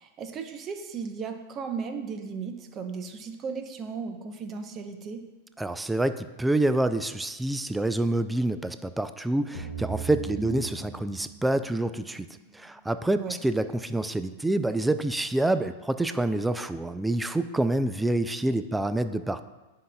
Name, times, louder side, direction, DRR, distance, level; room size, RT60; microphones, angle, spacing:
voice 1, 0.0-5.2 10.3-10.6 13.2-13.4, right 5 dB, 30° right, 6 dB, 0.8 m, -36 dB
voice 2, 5.6-12.3 12.5-19.4, right 1 dB, 5° right, 11 dB, 0.3 m, -27 dB
sound 1, 9.5-12.5, right 6 dB, 85° left, 1.1 m, -39 dB
9.8 x 5.5 x 2.3 m, 1.1 s
hypercardioid pair, 120°, 0 cm